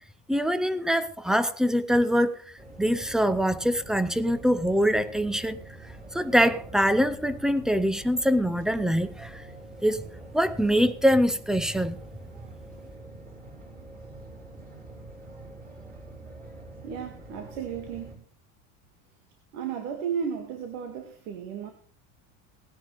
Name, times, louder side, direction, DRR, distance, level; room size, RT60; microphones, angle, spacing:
voice 1, 0.3-2.4 2.8-5.6 6.1-9.4 9.8-10.0 10.3-12.0, equal, ahead, 0.5 m, -24 dB
sound 1, 2.6-18.2, right 2 dB, 20° right, 6.1 m, -45 dB
voice 2, 16.8-18.2 19.5-21.7, right 7 dB, 90° right, 2.4 m, -34 dB
18.5 x 10.5 x 3.4 m
cardioid pair, 140°, 42 cm